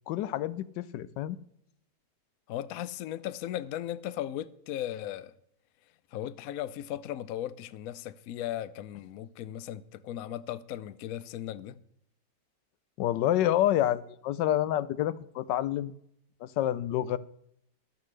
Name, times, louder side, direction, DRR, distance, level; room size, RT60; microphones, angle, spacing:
voice 1, 0.1-1.4 13.0-15.9 16.4-17.2, left 12 dB, 90° left, 1.3 m, -28 dB
voice 2, 2.5-5.3 6.1-11.8, left 12 dB, 70° left, 0.9 m, -37 dB
14.0 x 12.0 x 3.2 m
omnidirectional pair, 1.9 m